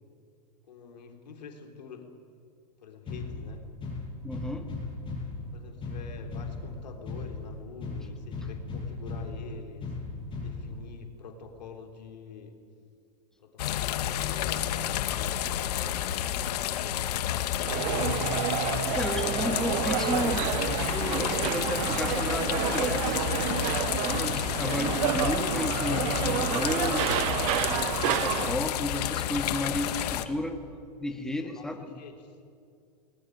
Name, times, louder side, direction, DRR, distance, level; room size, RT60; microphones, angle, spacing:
voice 1, 0.7-2.1 2.8-3.7 5.5-9.9 10.4-12.6 13.4-17.7 31.4-32.4, left 5 dB, 90° left, 4 dB, 3.6 m, -47 dB
sound 1, 3.1-11.1, left 3 dB, 25° left, 8.0 m, -37 dB
voice 2, 4.2-4.7 18.9-23.2 24.0-27.1 27.7-30.6 31.0-31.9, left 1 dB, 5° left, 5 dB, 1.7 m, -33 dB
sound 2, 13.6-30.3, left 11 dB, 70° left, 1.4 m, -30 dB
sound 3, 17.7-28.5, right 16 dB, 55° right, 0.8 m, -30 dB
21.0 x 20.0 x 9.3 m, 2.4 s
hypercardioid pair, 130°, 21 cm